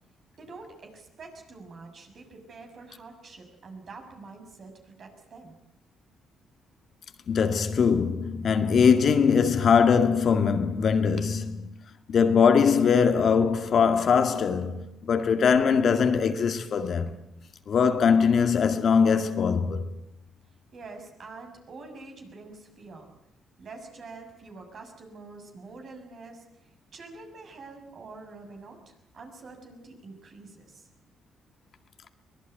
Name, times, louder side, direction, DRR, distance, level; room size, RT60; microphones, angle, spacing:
voice 1, 0.4-5.5 20.7-23.1 23.6-30.9, right 3 dB, 55° right, 6.6 m, -46 dB
voice 2, 7.3-11.7 12.1-17.1 17.7-19.9, left 6 dB, 55° left, 2.0 m, -22 dB
23.5 x 19.5 x 9.2 m
cardioid pair, 90°, 0 cm